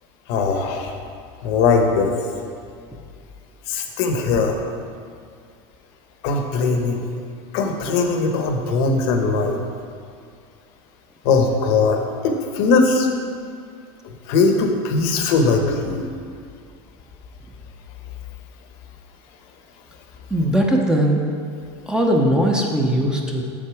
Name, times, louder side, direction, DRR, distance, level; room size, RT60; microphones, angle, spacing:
voice 1, 0.3-1.0 1.4-2.1 3.7-4.6 6.2-7.1 7.5-9.6 11.2-13.1 14.3-16.1, left 4 dB, 70° left, 4 dB, 1.1 m, -20 dB
voice 2, 20.3-21.2 21.9-23.4, right 1 dB, 5° right, 0 dB, 0.8 m, -19 dB
7.4 x 6.6 x 4.8 m, 2.2 s
supercardioid pair, 135°, 14 cm